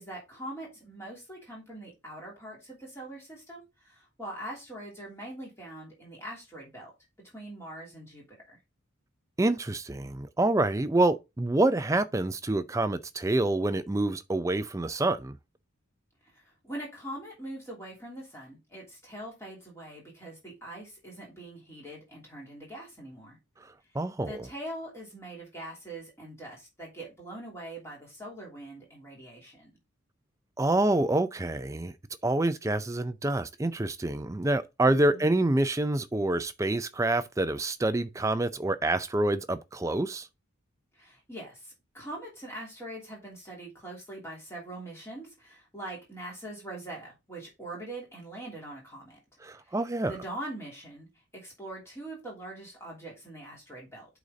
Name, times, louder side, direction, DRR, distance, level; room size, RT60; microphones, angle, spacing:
voice 1, 0.0-6.9 7.3-8.6 16.3-23.4 24.3-29.7 34.8-35.3 41.0-49.2 49.6-51.1 51.3-54.1, right 1 dB, 10° left, 2.9 m, -43 dB
voice 2, 9.4-15.3 23.9-24.5 30.6-31.9 32.2-40.3 49.4-50.1, right 2 dB, 15° right, 0.4 m, -27 dB
8.2 x 4.1 x 3.8 m
head